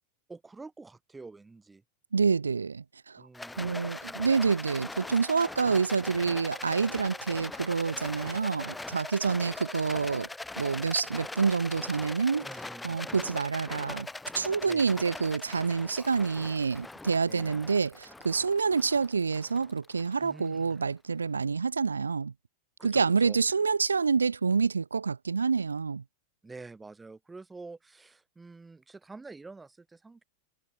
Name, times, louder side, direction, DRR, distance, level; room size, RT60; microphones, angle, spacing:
voice 1, 0.3-1.8 3.2-4.3 12.4-13.0 14.7-15.0 17.3-17.6 20.2-20.8 22.8-23.4 26.4-30.2, right 3 dB, 10° right, 1.7 m, -48 dB
voice 2, 2.1-3.3 3.6-10.3 10.6-12.5 12.8-14.1 14.3-22.3 22.8-26.0, right 5 dB, 75° right, 0.4 m, -27 dB
Rattle, 3.3-20.7, left 2 dB, 5° left, 0.3 m, -41 dB
figure-of-eight pair, 90°, 0 cm